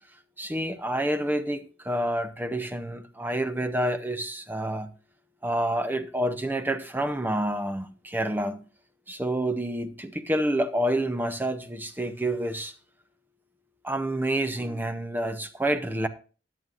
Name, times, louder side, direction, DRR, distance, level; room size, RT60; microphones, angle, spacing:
voice 1, 0.4-4.9 5.4-8.6 9.1-12.7 13.8-16.1, right 1 dB, 10° right, 0.6 m, -28 dB
14.0 x 9.1 x 2.5 m
head